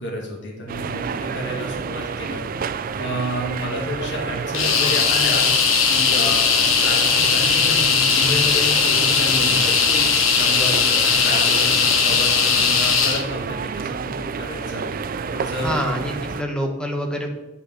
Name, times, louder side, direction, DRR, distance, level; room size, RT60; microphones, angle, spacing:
voice 1, 0.0-2.4 2.9-6.5 6.8-9.8 10.4-15.8, equal, 60° left, -3 dB, 2.0 m, -30 dB
sound 1, 0.7-16.4, right 5 dB, 45° right, 0.3 m, -30 dB
sound 2, 4.5-13.2, left 6 dB, 85° left, 1.1 m, -18 dB
voice 2, 10.6-11.1 15.6-17.3, equal, 5° left, 2 dB, 1.1 m, -27 dB
8.3 x 5.5 x 6.4 m, 1.1 s
head